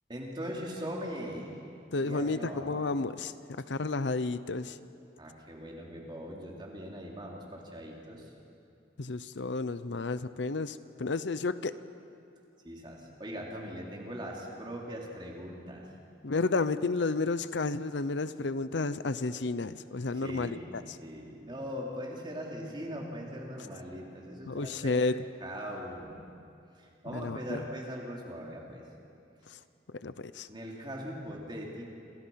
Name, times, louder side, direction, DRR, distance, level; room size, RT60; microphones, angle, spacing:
voice 1, 0.1-1.6 2.0-2.8 5.2-8.3 12.6-15.9 20.1-20.7 21.0-25.0 25.4-26.1 26.8-28.8 30.5-31.8, equal, 25° right, -2 dB, 3.8 m, -40 dB
voice 2, 1.9-3.3 3.7-4.8 9.0-11.7 16.2-21.0 24.5-25.3 27.1-27.6 29.5-29.6 30.0-30.5, left 3 dB, 75° left, 13 dB, 0.7 m, -31 dB
28.0 x 27.5 x 5.8 m, 2.5 s
head